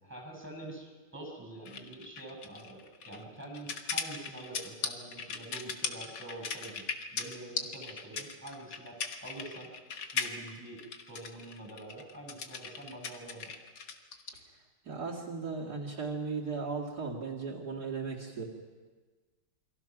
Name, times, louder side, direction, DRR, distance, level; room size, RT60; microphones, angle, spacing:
voice 1, 0.0-6.9 7.1-9.7 10.1-10.8 11.1-13.5, right 2 dB, 5° right, 1 dB, 6.3 m, -46 dB
sound 1, 1.7-14.4, left 5 dB, 75° left, 2.1 m, -38 dB
voice 2, 14.8-18.4, right 4 dB, 60° right, -4 dB, 2.8 m, -37 dB
28.5 x 23.0 x 6.0 m, 1.4 s
omnidirectional pair, 1.9 m